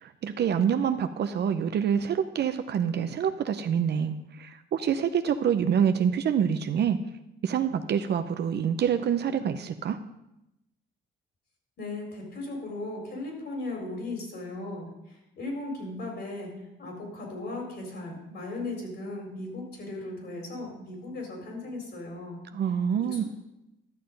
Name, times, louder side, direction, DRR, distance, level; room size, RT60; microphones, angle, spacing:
voice 1, 0.0-7.0 7.4-10.0 22.5-23.2, right 8 dB, 60° right, 9 dB, 0.7 m, -26 dB
voice 2, 11.8-22.4 23.0-23.3, left 2 dB, 60° left, 1 dB, 4.2 m, -37 dB
12.5 x 6.8 x 5.2 m, 0.89 s
cardioid pair, 90°, 20 cm